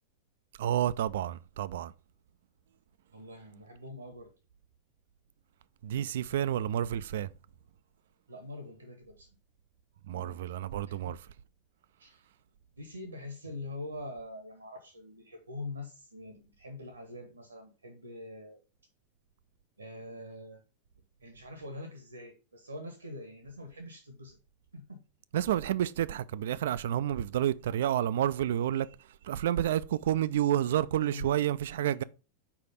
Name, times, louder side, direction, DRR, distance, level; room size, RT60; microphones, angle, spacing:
voice 1, 0.6-1.9 5.8-7.3 10.1-11.2 25.3-28.9 29.2-32.0, right 11 dB, 60° right, 0.3 m, -29 dB
voice 2, 3.1-4.3 8.3-9.3 10.1-10.5 10.9-11.2 12.0-12.2 12.7-18.6 19.8-20.6 21.2-24.4 24.7-25.0 31.1-31.5 31.8-32.0, left 2 dB, 80° right, 1.0 m, -44 dB
4.9 x 4.8 x 5.2 m
figure-of-eight pair, 90°, 0 cm